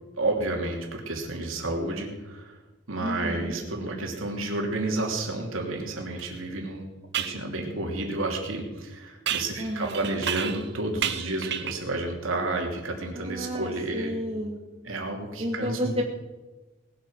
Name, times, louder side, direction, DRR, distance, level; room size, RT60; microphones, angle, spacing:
voice 1, 0.1-2.6 2.9-6.9 7.2-14.1 14.8-15.9, right 2 dB, 85° right, 1 dB, 2.8 m, -31 dB
voice 2, 3.0-3.5 9.6-10.1 13.1-14.6 15.4-16.0, equal, 30° right, -1 dB, 2.3 m, -31 dB
sound 1, 6.2-6.3 7.1-7.4 9.3-10.7 11.0-11.9, right 9 dB, 55° right, 0.9 m, -31 dB
19.0 x 8.9 x 6.4 m, 1.2 s
head